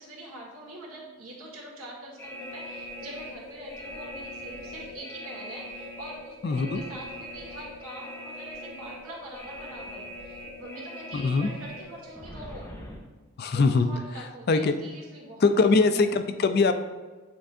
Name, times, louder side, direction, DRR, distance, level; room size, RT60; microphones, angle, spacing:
voice 1, 0.0-12.7 13.5-15.7 15.9-16.1, right 1 dB, 75° right, -2 dB, 1.7 m, -44 dB
sound 1, 2.2-13.0, equal, 10° left, 0.7 m, -41 dB
voice 2, 6.4-6.8 11.1-11.5 13.4-13.9 14.5-14.7 15.4-16.7, left 4 dB, 45° left, 9 dB, 0.4 m, -22 dB
8.7 x 4.5 x 2.6 m, 1.3 s
head